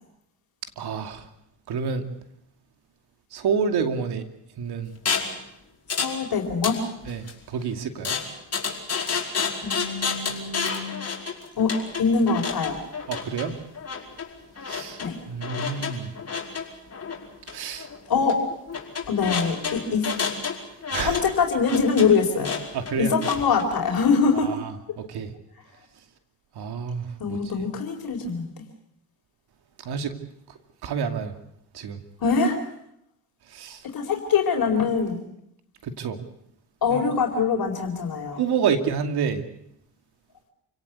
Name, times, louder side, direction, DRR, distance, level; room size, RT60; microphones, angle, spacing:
voice 1, 0.8-1.2 1.7-2.0 3.3-4.2 4.6-4.9 7.1-8.2 13.1-13.5 14.6-15.0 15.3-16.1 17.5-17.9 20.9-21.2 22.7-23.1 24.4-25.3 26.5-27.4 29.8-30.1 30.8-31.3 31.7-32.0 33.5-33.8 35.8-36.2 38.4-39.4, right 6 dB, 70° right, 7 dB, 2.6 m, -28 dB
sound 1, 5.1-5.4 5.9-6.2 6.5-7.3 8.0-23.7, left 5 dB, 40° left, 5.1 m, -30 dB
voice 2, 5.9-6.8 9.6-11.0 11.6-11.7 12.0-12.8 15.0-15.2 18.1-18.4 19.1-20.1 20.9-22.6 23.0-24.5 27.2-28.6 32.2-32.6 33.9-35.2 36.8-38.4, left 5 dB, 60° left, 3 dB, 4.5 m, -23 dB
28.5 x 17.5 x 8.3 m, 0.77 s
cardioid pair, 75°, 40 cm